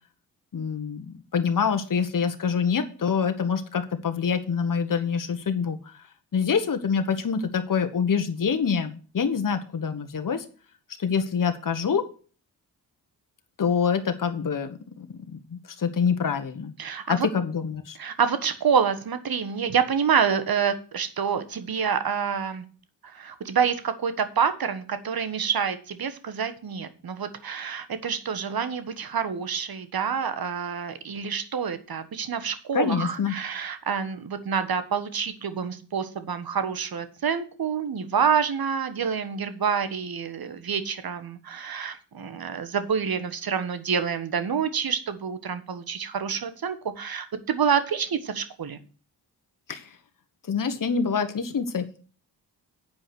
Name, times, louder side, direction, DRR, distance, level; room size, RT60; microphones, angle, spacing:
voice 1, 0.5-6.0 6.3-10.4 11.0-12.0 13.6-15.1 15.5-16.7 17.1-18.0 32.7-33.3 49.7-49.9 50.5-51.9, left 6 dB, 50° left, 7 dB, 1.4 m, -26 dB
voice 2, 16.8-17.3 18.0-22.6 23.0-48.8, right 7 dB, 55° right, 11 dB, 1.5 m, -27 dB
8.8 x 5.0 x 7.7 m, 0.39 s
cardioid pair, 55°, 42 cm